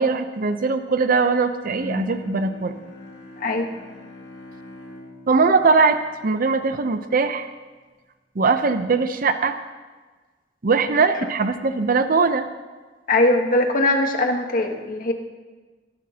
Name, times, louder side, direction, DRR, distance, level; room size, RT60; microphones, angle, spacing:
voice 1, 0.0-2.7 5.3-6.0 6.2-7.5 8.3-9.6 10.6-12.5, right 4 dB, 50° right, 9 dB, 0.6 m, -20 dB
Bowed string instrument, 1.7-6.8, left 1 dB, 85° left, 2.5 m, -38 dB
voice 2, 13.1-15.1, left 2 dB, 50° left, 3 dB, 1.2 m, -20 dB
19.5 x 11.5 x 2.8 m, 1.3 s
head